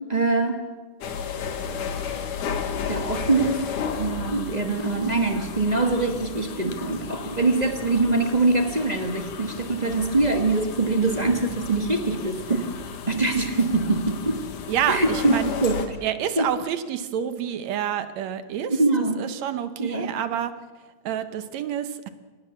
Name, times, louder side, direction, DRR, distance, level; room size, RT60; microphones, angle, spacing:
voice 1, 0.1-0.6 2.9-3.6 3.9-12.7 13.1-14.4 14.9-15.3 15.6-15.8 16.4-16.5 18.7-19.1 19.8-20.1, right 3 dB, 40° right, 4 dB, 0.6 m, -23 dB
sound 1, 1.0-15.9, left 6 dB, 90° left, 3.2 m, -34 dB
voice 2, 14.7-15.5 16.0-20.5 21.0-22.1, right 9 dB, 70° right, 11 dB, 2.2 m, -28 dB
24.0 x 18.5 x 7.1 m, 1.3 s
omnidirectional pair, 3.5 m